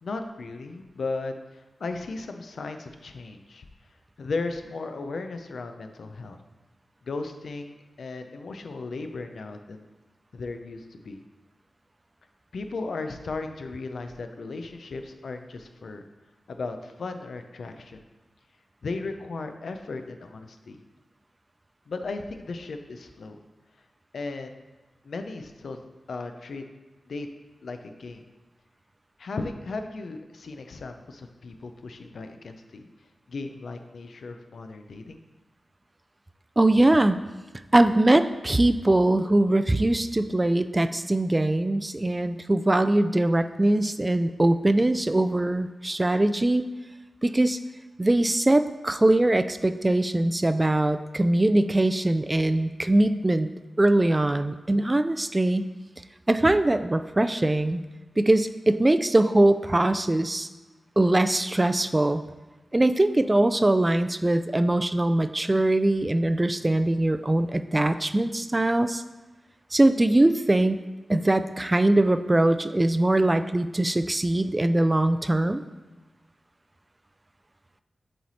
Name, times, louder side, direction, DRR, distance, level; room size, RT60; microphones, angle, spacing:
voice 1, 0.0-3.7 4.2-6.4 7.0-9.9 10.3-11.2 12.5-16.0 16.5-18.0 18.8-20.8 21.9-23.4 24.1-24.6 25.0-25.8 26.1-26.6 27.1-27.3 27.6-28.2 29.2-32.9 33.3-35.2, left 3 dB, 75° left, 6 dB, 0.5 m, -36 dB
voice 2, 36.6-37.2 37.7-46.6 47.2-47.6 48.0-53.5 53.8-55.7 56.3-57.8 58.2-60.5 61.0-62.2 62.7-69.0 69.7-70.8 71.1-75.6, right 1 dB, 25° right, 10 dB, 0.3 m, -22 dB
7.7 x 3.2 x 4.2 m, 1.2 s
cardioid pair, 45°, 0 cm